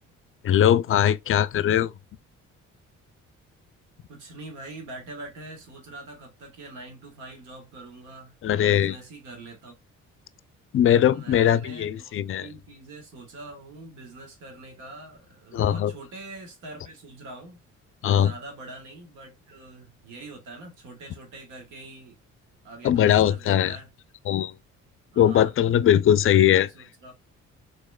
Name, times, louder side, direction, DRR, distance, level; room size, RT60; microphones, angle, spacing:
voice 1, 0.4-1.9 8.4-9.0 10.7-12.5 15.5-15.9 18.0-18.3 22.8-23.8 24.3-24.6 25.2-26.7, left 10 dB, 45° left, 0.4 m, -20 dB
voice 2, 4.1-9.7 11.0-17.6 18.1-22.2 22.6-23.9 25.1-25.5 26.2-27.1, right 2 dB, 90° right, 1.4 m, -44 dB
4.2 x 3.1 x 2.2 m
cardioid pair, 90°, 30 cm